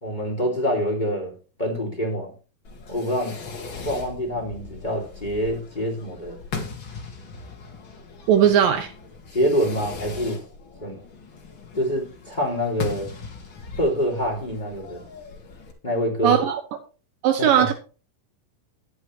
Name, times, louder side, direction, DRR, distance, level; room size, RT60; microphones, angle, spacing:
voice 1, 0.0-1.3 1.6-2.3 2.9-3.4 3.8-6.4 9.3-10.4 10.8-11.0 11.7-13.1 13.8-15.0 15.8-16.3 17.4-17.7, equal, 15° left, 2.8 m, -25 dB
Fireworks, 2.6-15.7, left 4 dB, 40° left, 2.1 m, -39 dB
voice 2, 8.3-8.9 16.2-16.6 17.2-17.7, right 9 dB, 70° right, 2.5 m, -18 dB
11.5 x 10.0 x 3.2 m
omnidirectional pair, 4.4 m